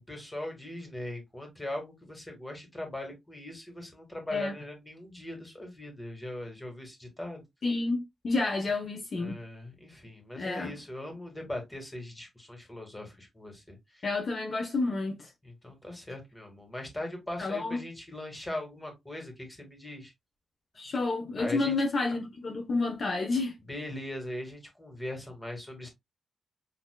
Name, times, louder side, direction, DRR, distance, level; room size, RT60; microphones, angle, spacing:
voice 1, 0.1-7.4 9.2-14.0 15.4-20.1 21.4-21.7 23.7-25.9, left 1 dB, 10° left, 1.6 m, -40 dB
voice 2, 7.6-9.4 10.4-10.8 14.0-15.3 17.4-17.8 20.8-23.5, left 3 dB, 40° left, 0.8 m, -30 dB
6.5 x 2.8 x 2.2 m
wide cardioid pair, 160°, 0 cm